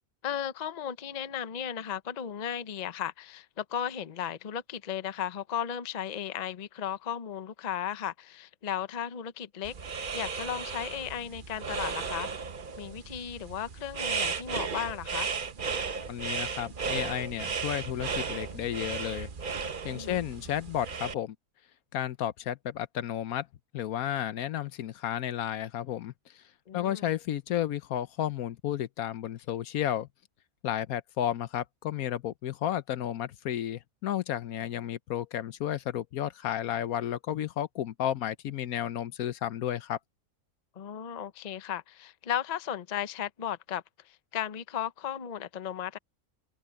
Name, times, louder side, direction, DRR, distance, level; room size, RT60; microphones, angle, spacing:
voice 1, 0.2-12.5 12.8-15.3 19.9-20.2 26.7-27.1 40.8-46.0, left 9 dB, 40° left, 0.6 m, -35 dB
sound 1, 9.6-21.1, right 5 dB, 40° right, 0.9 m, -35 dB
voice 2, 16.1-19.3 19.8-21.3 21.9-23.5 23.7-26.1 26.7-30.1 30.6-40.0, left 11 dB, 75° left, 1.2 m, -32 dB
omnidirectional pair, 1.6 m